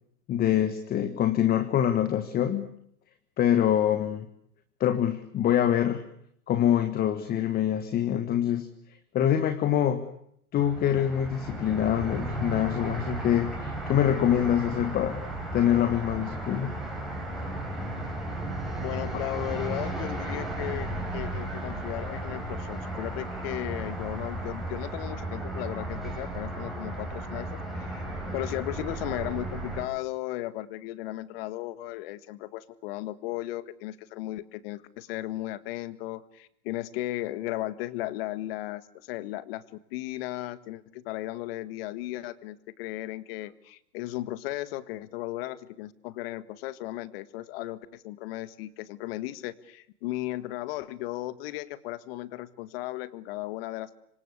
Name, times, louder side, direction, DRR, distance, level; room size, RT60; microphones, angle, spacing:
voice 1, 0.3-2.7 3.4-4.3 4.8-6.1 6.5-8.7 9.1-10.0 10.5-15.2 15.5-16.7, left 10 dB, 20° left, 9 dB, 1.6 m, -25 dB
sound 1, 10.6-29.8, right 1 dB, ahead, 5.9 m, -34 dB
voice 2, 18.8-28.0 28.3-39.6 39.9-54.0, left 16 dB, 40° left, 16 dB, 1.7 m, -36 dB
26.5 x 25.0 x 8.4 m, 0.71 s
hypercardioid pair, 140°, 47 cm